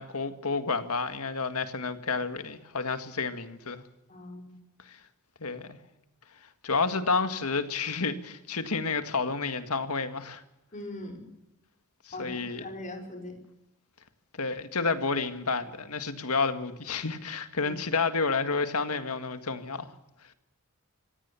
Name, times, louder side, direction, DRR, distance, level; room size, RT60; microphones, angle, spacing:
voice 1, 0.0-3.8 4.9-5.0 5.4-5.8 6.6-10.4 12.0-12.7 14.3-19.9, left 4 dB, 75° left, 1.9 m, -30 dB
voice 2, 4.1-4.5 10.7-11.3 12.1-13.3 17.6-17.8, left 1 dB, 35° left, 4.9 m, -41 dB
25.5 x 17.5 x 7.0 m
head